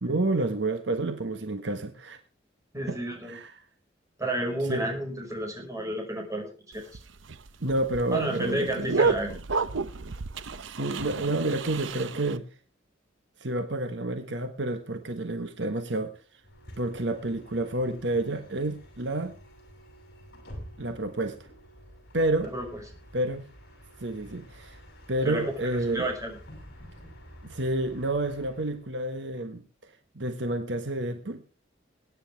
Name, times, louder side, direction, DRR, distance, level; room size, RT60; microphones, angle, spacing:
voice 1, 0.0-2.2 2.9-3.0 3.3-3.5 4.7-4.8 7.6-9.1 10.6-12.4 13.4-16.1 16.8-19.3 20.8-21.5 22.1-22.5 23.1-23.5 24.0-24.8 25.1-26.1 27.4-29.6 30.1-31.4, right 2 dB, 70° right, 8 dB, 1.4 m, -29 dB
voice 2, 2.7-3.4 4.2-6.8 8.1-9.3 22.4-22.7 25.2-25.4 25.7-26.4, right 1 dB, 20° right, 2 dB, 5.2 m, -31 dB
sound 1, 6.7-12.4, right 4 dB, 90° right, 0.8 m, -31 dB
Bus, 16.4-28.8, equal, 60° left, 6.8 m, -49 dB
22.5 x 9.8 x 3.4 m, 0.36 s
head